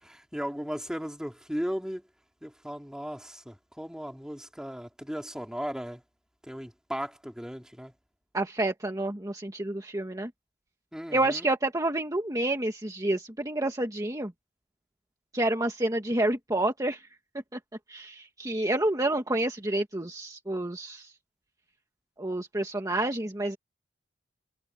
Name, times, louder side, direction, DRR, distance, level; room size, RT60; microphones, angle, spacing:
voice 1, 0.0-2.0 2.4-6.0 6.4-7.9 10.9-11.5, equal, 5° right, 3.1 m, -36 dB
voice 2, 8.3-10.3 11.1-14.3 15.3-17.0 17.5-17.6 17.9-21.1 22.2-23.6, right 1 dB, 20° right, 1.8 m, -29 dB
head